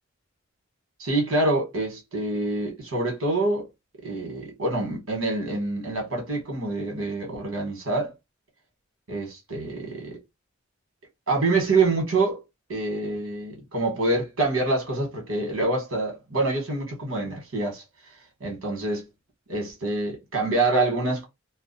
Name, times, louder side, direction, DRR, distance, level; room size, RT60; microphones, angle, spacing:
voice 1, 1.0-3.7 4.0-8.1 9.1-10.2 11.3-12.4 12.7-17.8 18.4-19.0 19.5-21.3, right 2 dB, 80° right, 1.1 m, -26 dB
2.3 x 2.2 x 2.5 m
head